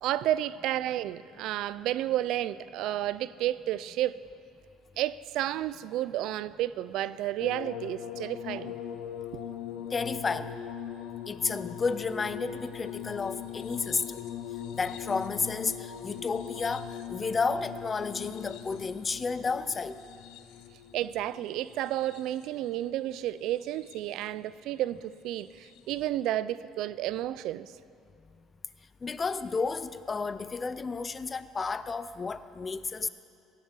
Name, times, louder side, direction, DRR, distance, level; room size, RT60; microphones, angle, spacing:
voice 1, 0.0-4.2 5.0-8.7 20.9-27.7, right 13 dB, 65° right, 0.3 m, -31 dB
sound 1, 7.4-22.6 23.5-24.2 25.6-25.8, left 9 dB, 80° left, 0.7 m, -41 dB
voice 2, 9.9-10.6 11.3-14.2 14.7-20.0 29.0-33.1, left 4 dB, 20° left, 0.4 m, -32 dB
17.0 x 7.4 x 6.8 m
cardioid pair, 150°, 0 cm